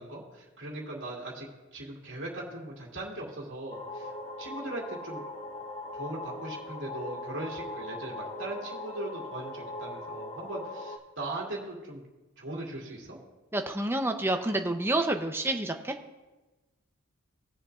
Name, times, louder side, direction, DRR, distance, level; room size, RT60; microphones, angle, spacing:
voice 1, 0.0-4.1 4.4-5.2 5.9-12.0 12.4-13.2, right 2 dB, 60° right, -3 dB, 2.4 m, -39 dB
sound 1, 3.7-11.0, left 2 dB, 30° left, 0.6 m, -40 dB
voice 2, 13.5-15.9, right 1 dB, 10° right, 6 dB, 0.6 m, -28 dB
19.0 x 7.1 x 2.4 m, 1.1 s
head